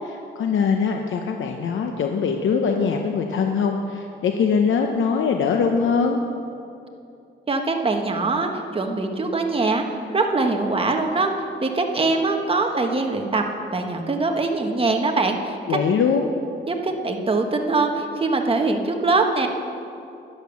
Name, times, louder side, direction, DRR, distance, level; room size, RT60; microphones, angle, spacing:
voice 1, 0.0-6.2 15.7-16.3, left 5 dB, 75° left, 4 dB, 0.8 m, -22 dB
voice 2, 7.5-9.8 10.1-11.3 11.6-13.4 13.7-15.8 16.7-19.5, right 3 dB, 30° right, 3 dB, 1.4 m, -22 dB
11.0 x 10.5 x 7.0 m, 2.6 s
cardioid pair, 100°, 20 cm